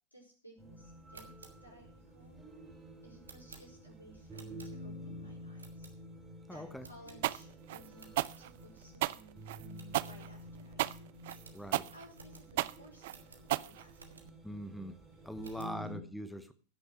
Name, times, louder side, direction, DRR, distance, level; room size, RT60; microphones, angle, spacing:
voice 1, 0.1-2.4 3.0-5.9 6.5-14.2 15.4-16.0, right 1 dB, 85° left, 1 dB, 4.7 m, -58 dB
sound 1, 0.6-16.0, equal, 15° right, 3.3 m, -50 dB
sound 2, 0.9-5.1 5.6-6.3 6.8-7.6 7.9-8.4 8.8-8.9 9.2-9.3 9.7-10.6 10.9-11.0 11.2-14.5 15.0-15.8, right 4 dB, 75° right, 1.8 m, -58 dB
voice 2, 6.5-6.8 11.5-11.9 14.4-15.0 15.2-16.5, equal, ahead, 10 dB, 0.9 m, -42 dB
sound 3, 7.2-14.3, right 16 dB, 50° right, 0.4 m, -34 dB
15.5 x 6.6 x 6.0 m, 0.41 s
figure-of-eight pair, 90°, 0 cm